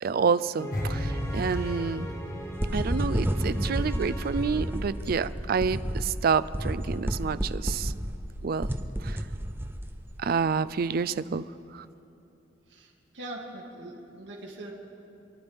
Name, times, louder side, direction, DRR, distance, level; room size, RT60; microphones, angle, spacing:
voice 1, 0.0-2.1 2.7-7.9 8.4-8.7 9.0-9.2 10.2-11.5 11.7-11.9, right 5 dB, 55° right, 15 dB, 0.4 m, -28 dB
sound 1, 0.6-5.7, equal, 15° left, 1.2 m, -40 dB
sound 2, 0.7-3.9 4.2-4.4, equal, 50° left, 1.5 m, -34 dB
sound 3, 2.6-10.1, equal, 10° right, 0.6 m, -31 dB
voice 2, 12.7-14.7, right 1 dB, 70° right, -3 dB, 2.0 m, -42 dB
27.5 x 10.5 x 3.5 m, 2.7 s
head